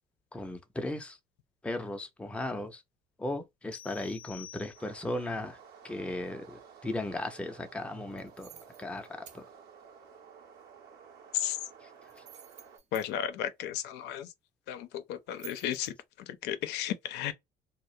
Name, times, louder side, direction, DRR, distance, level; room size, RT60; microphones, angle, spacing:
voice 1, 0.3-1.2 1.6-2.8 3.2-5.6 5.8-8.5 8.8-9.5, left 1 dB, 5° left, 0.5 m, -36 dB
sound 1, 3.7-5.2, left 10 dB, 45° left, 0.7 m, -50 dB
sound 2, 4.7-12.8, right 6 dB, 65° right, 0.8 m, -54 dB
sound 3, 8.1-9.4 12.0-13.1 15.3-15.9, right 9 dB, 45° right, 0.5 m, -51 dB
voice 2, 12.9-14.3 14.7-17.3, left 10 dB, 85° left, 0.5 m, -34 dB
2.3 x 2.1 x 2.6 m
cardioid pair, 110°, 17 cm